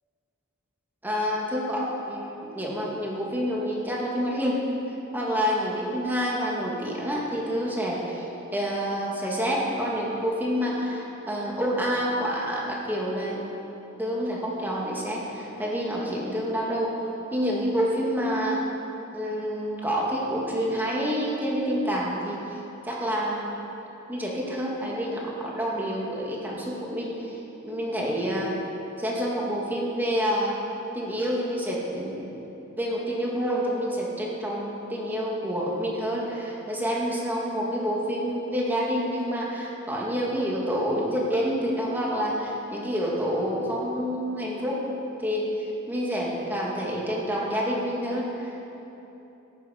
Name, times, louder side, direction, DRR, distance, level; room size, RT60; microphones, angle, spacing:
voice 1, 1.0-4.6 5.1-8.3 8.5-13.5 14.0-16.9 17.3-18.6 19.1-22.4 22.8-23.6 24.1-27.4 27.6-28.5 29.0-30.6 30.9-32.3 32.8-44.8 45.2-48.6, equal, 10° right, -4 dB, 1.9 m, -28 dB
14.0 x 11.0 x 5.8 m, 3.0 s
head